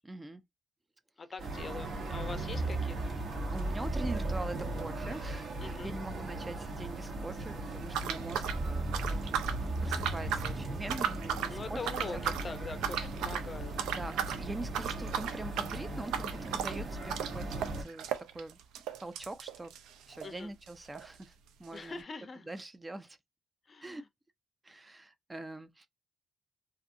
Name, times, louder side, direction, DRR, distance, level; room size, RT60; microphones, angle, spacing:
voice 1, 0.0-0.4 3.5-11.8 12.1-12.2 13.8-18.1 18.3-18.6 19.0-19.7 20.1-21.3 21.6-22.0 22.4-23.2 23.8-24.0 24.6-25.9, right 2 dB, 20° right, 0.4 m, -43 dB
voice 2, 1.2-3.1 5.6-6.0 11.5-13.9 20.2-20.5 21.7-22.5 23.7-24.0, left 4 dB, 40° left, 0.5 m, -43 dB
sound 1, 1.4-17.8, right 2 dB, 65° right, 1.2 m, -39 dB
sound 2, 2.5-5.5 8.5-11.9, right 2 dB, 40° right, 0.9 m, -36 dB
sound 3, 7.9-9.6 9.9-10.5 10.8-11.6 11.9-12.5 12.8-13.5 13.8-14.4 14.7-20.4 20.7-20.8 20.9-21.1 21.7-21.8, right 9 dB, 90° right, 0.4 m, -35 dB
2.6 x 2.5 x 2.5 m
cardioid pair, 80°, 0 cm